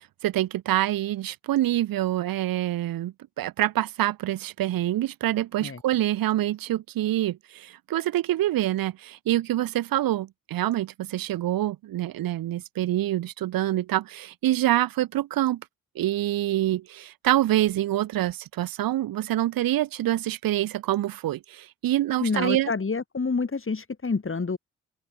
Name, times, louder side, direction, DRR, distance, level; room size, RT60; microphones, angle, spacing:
voice 1, 0.0-15.6 15.9-22.7, right 14 dB, 80° right, 3.0 m, -26 dB
voice 2, 22.2-24.6, left 4 dB, 35° left, 4.6 m, -28 dB
open air
supercardioid pair, 45°, 34 cm